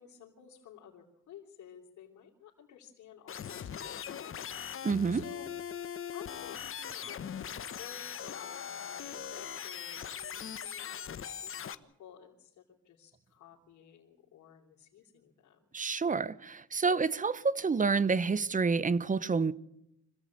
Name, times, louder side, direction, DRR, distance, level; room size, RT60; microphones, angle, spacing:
voice 1, 0.0-5.5 6.1-15.6, left 9 dB, 70° left, 3.3 m, -54 dB
sound 1, 3.3-11.7, left 8 dB, 45° left, 1.1 m, -40 dB
voice 2, 4.8-5.2 15.7-19.5, right 4 dB, 25° right, 0.9 m, -28 dB
25.5 x 16.0 x 8.7 m
cardioid pair, 90°, 30 cm